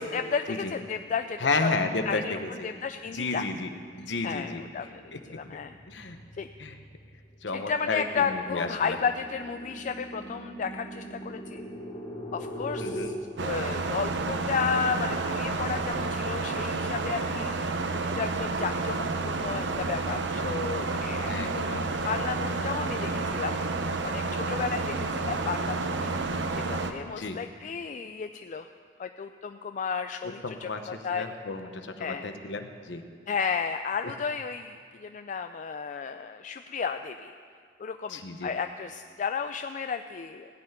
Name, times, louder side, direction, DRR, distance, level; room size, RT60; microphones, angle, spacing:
voice 1, 0.1-1.7 2.0-3.4 4.2-5.0 5.3-5.8 6.4-6.5 7.5-11.6 12.3-13.1 13.4-17.5 17.9-23.6 24.0-28.7 29.0-30.7 31.0-31.3 32.0-32.3 33.3-37.3 37.8-40.5, left 6 dB, 45° left, 8 dB, 0.3 m, -33 dB
voice 2, 1.4-2.7 3.1-3.7 4.0-4.6 5.1-5.2 5.9-6.2 6.6-6.8 7.4-9.0 12.8-13.1 21.3-21.9 27.2-27.4 30.4-33.0 38.1-38.5, left 3 dB, 75° left, 7 dB, 1.0 m, -32 dB
sound 1, 4.7-13.1, equal, 25° left, 1.9 m, -41 dB
sound 2, 13.4-26.9, right 3 dB, 75° right, 0.8 m, -30 dB
17.0 x 5.7 x 9.0 m, 2.1 s
head